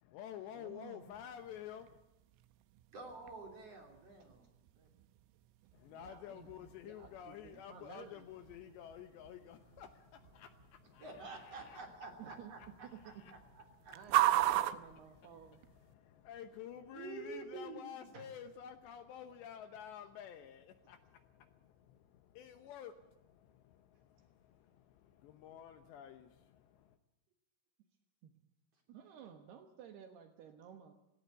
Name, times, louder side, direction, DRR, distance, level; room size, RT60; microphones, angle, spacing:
voice 1, 0.0-2.0 5.7-27.0, left 9 dB, 75° left, 9 dB, 2.8 m, -52 dB
voice 2, 0.5-1.1 5.9-8.2 12.2-12.5 12.9-13.2 13.9-15.6 18.1-18.3 28.2-28.3 28.9-30.9, right 8 dB, 65° right, 7 dB, 2.9 m, -54 dB
sound 1, 1.1-15.9, right 15 dB, 90° right, 3.6 m, -40 dB
voice 3, 2.9-4.5 4.8-4.9 11.0-14.0 16.9-18.0, right 3 dB, 35° right, 3 dB, 3.6 m, -49 dB
18.0 x 17.5 x 8.3 m, 0.93 s
omnidirectional pair, 5.8 m